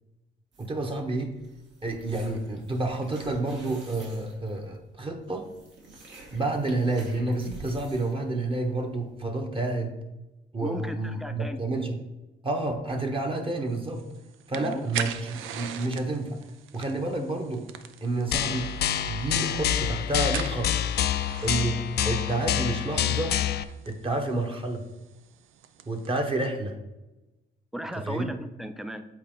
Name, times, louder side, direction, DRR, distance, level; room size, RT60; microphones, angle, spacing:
sound 1, 0.5-9.3, right 2 dB, 70° right, 1.8 m, -50 dB
voice 1, 0.6-1.3 1.8-5.4 6.3-9.9 10.5-11.9 12.4-14.0 14.5-16.4 16.7-17.6 18.0-18.7 19.1-20.7 21.4-21.8 22.0-23.4 23.9-24.8 25.9-26.7 28.1-28.3, right 2 dB, 25° right, 3 dB, 1.0 m, -29 dB
voice 2, 10.6-11.6 14.5-14.9 27.7-29.1, equal, ahead, 9 dB, 0.5 m, -36 dB
sound 2, 13.7-26.2, right 9 dB, 85° right, 0.5 m, -42 dB
sound 3, 18.3-23.6, left 10 dB, 55° left, 0.4 m, -27 dB
7.6 x 4.1 x 3.8 m, 1.0 s
cardioid pair, 90°, 20 cm